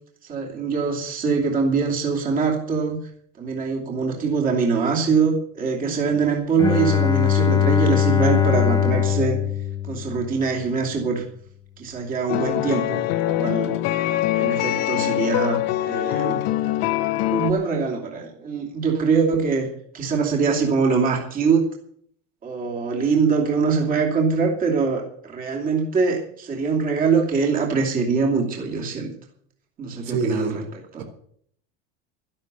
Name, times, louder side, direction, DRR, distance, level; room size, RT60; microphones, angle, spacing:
voice 1, 0.3-3.0 3.4-9.4 9.9-11.2 11.8-13.7 14.4-16.4 17.3-19.7 19.9-21.6 22.4-29.1 29.8-31.0, right 5 dB, 25° right, 0 dB, 2.8 m, -23 dB
Bowed string instrument, 6.6-10.5, left 9 dB, 10° left, 1.2 m, -21 dB
sound 1, 12.3-17.5, left 14 dB, 55° left, 1.1 m, -23 dB
voice 2, 30.0-30.6, right 3 dB, 75° right, 5 dB, 3.9 m, -26 dB
12.5 x 12.0 x 6.8 m, 0.63 s
cardioid pair, 155°, 31 cm